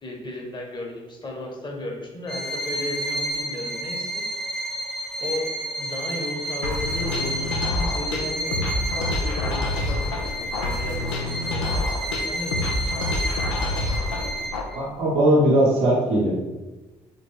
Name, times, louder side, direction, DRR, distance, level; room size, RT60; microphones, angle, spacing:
voice 1, 0.0-4.2 5.2-5.5 5.8-13.1, left 2 dB, 30° left, 1 dB, 1.1 m, -35 dB
Bowed string instrument, 2.3-14.8, right 1 dB, ahead, 0.9 m, -30 dB
sound 1, 6.6-14.6, left 2 dB, 80° left, 0.5 m, -27 dB
voice 2, 14.7-16.3, right 1 dB, 70° right, -5 dB, 1.3 m, -19 dB
4.4 x 3.3 x 3.4 m, 1.2 s
figure-of-eight pair, 45°, 16 cm